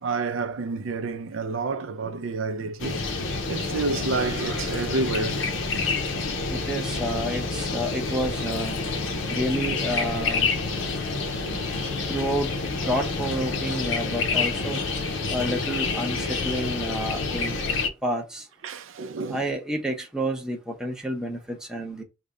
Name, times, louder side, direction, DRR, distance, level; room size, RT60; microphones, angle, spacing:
voice 1, 0.0-3.0 3.5-5.4 11.5-11.7 12.0-12.1 18.6-19.5, right 3 dB, 85° right, 0.5 m, -29 dB
sound 1, 2.8-17.9, left 4 dB, 75° left, 0.6 m, -28 dB
voice 2, 6.5-8.8 9.3-10.5 12.1-12.5 12.8-14.8 15.3-17.5 18.0-18.4 19.3-22.0, equal, 5° right, 0.6 m, -29 dB
3.2 x 2.2 x 3.7 m
head